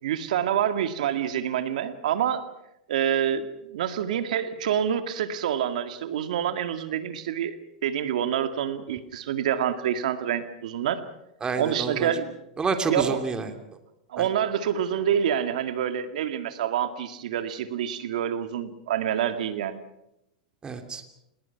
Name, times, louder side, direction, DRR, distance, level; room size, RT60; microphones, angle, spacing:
voice 1, 0.0-2.4 2.9-7.6 7.8-11.0 11.6-12.4 12.9-13.2 14.1-19.8, right 9 dB, 75° right, 9 dB, 2.2 m, -27 dB
voice 2, 11.4-12.1 12.6-13.5 14.2-14.3 20.6-21.0, right 4 dB, 20° right, 7 dB, 2.9 m, -28 dB
28.0 x 20.5 x 6.0 m, 0.84 s
hypercardioid pair, 115°, 4 cm